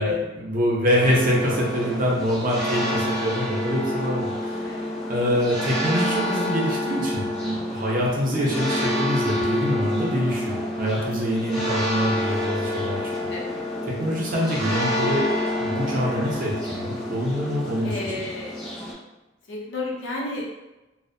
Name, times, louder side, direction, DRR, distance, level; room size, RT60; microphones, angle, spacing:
voice 1, 0.0-4.7 5.1-13.3 13.9-15.3 15.6-18.1, equal, 45° right, -4 dB, 0.5 m, -25 dB
sound 1, 1.0-18.9, left 1 dB, 30° left, 0.6 m, -28 dB
voice 2, 13.3-13.6 17.8-18.6 19.5-20.5, left 2 dB, 80° left, -3 dB, 0.6 m, -31 dB
2.4 x 2.0 x 2.6 m, 1.0 s
head